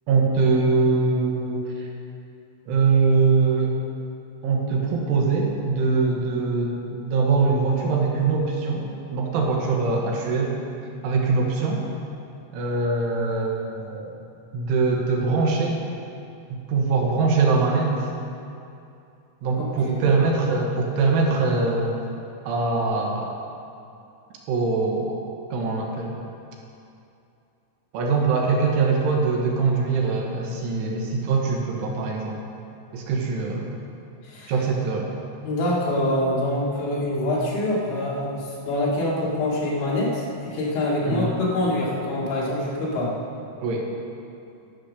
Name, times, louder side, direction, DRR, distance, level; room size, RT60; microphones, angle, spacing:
voice 1, 0.1-1.9 2.7-3.7 4.4-8.9 9.1-10.6 11.0-11.8 12.5-14.1 14.5-15.8 16.7-18.0 19.4-22.0 22.5-23.3 24.5-25.2 25.5-26.1 27.9-32.4 32.9-33.7 34.5-35.1 41.0-41.3 43.6-43.9, right 4 dB, 75° right, -1 dB, 3.7 m, -22 dB
voice 2, 19.6-20.1 34.2-34.5 35.4-43.2, left 1 dB, 65° left, -6 dB, 4.3 m, -25 dB
12.0 x 9.1 x 6.4 m, 2.6 s
omnidirectional pair, 5.8 m